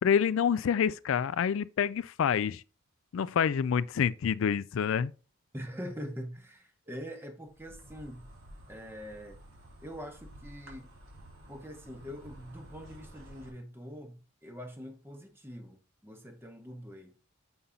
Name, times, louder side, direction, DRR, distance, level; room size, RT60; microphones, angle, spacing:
voice 1, 0.0-2.6 3.1-5.1, left 7 dB, 70° left, 0.3 m, -27 dB
voice 2, 5.5-8.3 8.7-9.4 9.8-10.9 11.5-17.2, equal, 10° right, 0.9 m, -44 dB
Insect, 7.5-13.5, equal, 75° right, 3.6 m, -52 dB
6.9 x 5.6 x 3.7 m
head